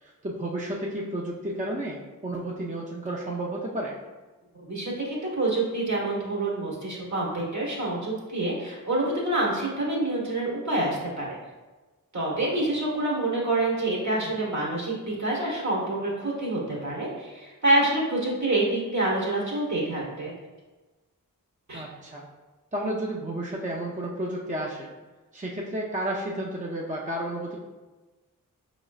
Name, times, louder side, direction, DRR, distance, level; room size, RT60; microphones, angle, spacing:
voice 1, 0.0-4.0 21.7-22.2 22.7-24.9 25.3-27.6, right 1 dB, 20° right, -2 dB, 0.6 m, -32 dB
voice 2, 4.6-11.4 12.1-20.3 21.7-21.8, right 2 dB, 55° right, -4 dB, 1.4 m, -27 dB
5.1 x 3.0 x 2.4 m, 1.2 s
cardioid pair, 40°, 35 cm